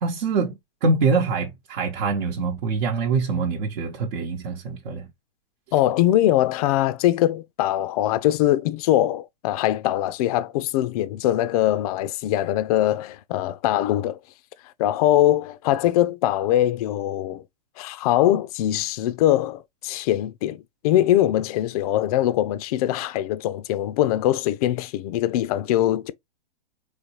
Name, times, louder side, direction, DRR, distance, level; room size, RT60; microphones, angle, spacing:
voice 1, 0.0-5.1, right 4 dB, 55° right, 1.0 m, -24 dB
voice 2, 5.7-14.2 14.8-17.4 17.8-26.1, left 13 dB, 40° left, 0.5 m, -22 dB
4.0 x 3.1 x 3.0 m
hypercardioid pair, 120°, 29 cm